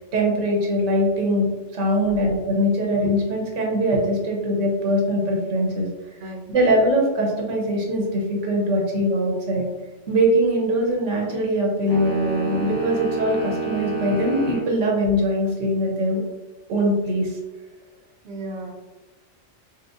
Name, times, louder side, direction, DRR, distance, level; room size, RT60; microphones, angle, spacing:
voice 1, 0.0-5.9 6.5-9.7 10.1-16.2 16.7-17.4, equal, 90° right, -1 dB, 1.2 m, -22 dB
sound 1, 11.9-14.7, right 3 dB, 85° left, 1.4 m, -28 dB
voice 2, 18.2-18.7, right 1 dB, 65° right, 1 dB, 0.7 m, -34 dB
4.7 x 2.1 x 2.4 m, 1.1 s
omnidirectional pair, 1.2 m